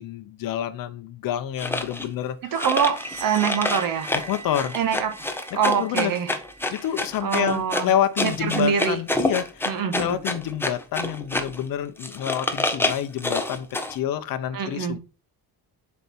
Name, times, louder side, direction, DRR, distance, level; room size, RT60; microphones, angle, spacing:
voice 1, 0.0-2.4 4.1-4.7 5.5-6.2 6.7-9.7 10.0-15.0, left 10 dB, 55° left, 0.7 m, -28 dB
sound 1, 1.6-2.1 2.5-11.6 12.0-14.0, left 2 dB, 5° left, 0.5 m, -28 dB
voice 2, 2.5-4.1 4.7-5.1 5.5-6.3 7.2-7.9 8.2-9.0 9.6-10.2 14.5-15.0, right 7 dB, 50° right, 1.4 m, -24 dB
sound 2, 2.6-8.2, right 4 dB, 35° right, 1.6 m, -42 dB
7.1 x 4.3 x 4.3 m
cardioid pair, 165°, 41 cm